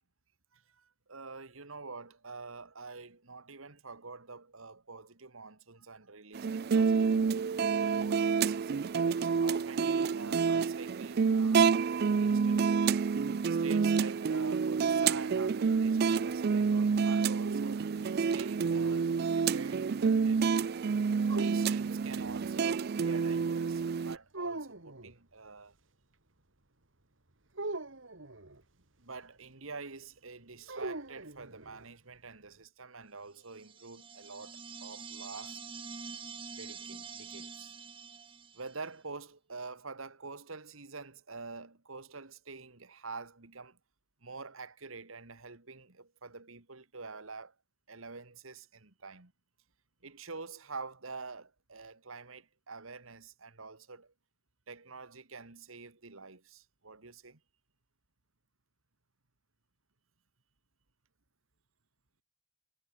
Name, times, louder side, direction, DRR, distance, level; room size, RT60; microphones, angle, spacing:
voice 1, 0.5-7.4 7.9-13.0 13.5-17.8 18.2-20.8 21.3-25.7 29.0-35.6 36.6-37.7 38.5-43.8 44.2-47.5 47.9-49.3 50.0-54.1 54.7-57.4, right 4 dB, 85° right, 2.2 m, -47 dB
sound 1, 6.3-24.1, right 5 dB, 50° right, 0.4 m, -28 dB
sound 2, 16.9-18.8 21.3-22.5 24.3-25.1 27.5-28.6 30.7-31.9, right 2 dB, 65° right, 2.5 m, -42 dB
sound 3, 33.5-38.9, right 5 dB, 25° right, 1.0 m, -46 dB
head